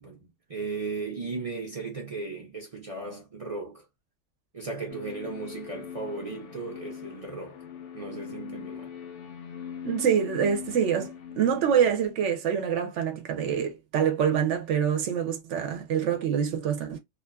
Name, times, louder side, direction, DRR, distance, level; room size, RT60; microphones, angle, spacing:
voice 1, 0.0-3.8 4.5-7.5 7.9-8.9, right 3 dB, 45° right, 0.5 m, -36 dB
sound 1, 4.9-12.1, left 8 dB, 70° left, 0.8 m, -41 dB
voice 2, 9.8-17.0, right 8 dB, 65° right, 0.8 m, -26 dB
2.7 x 2.4 x 2.2 m
omnidirectional pair, 1.4 m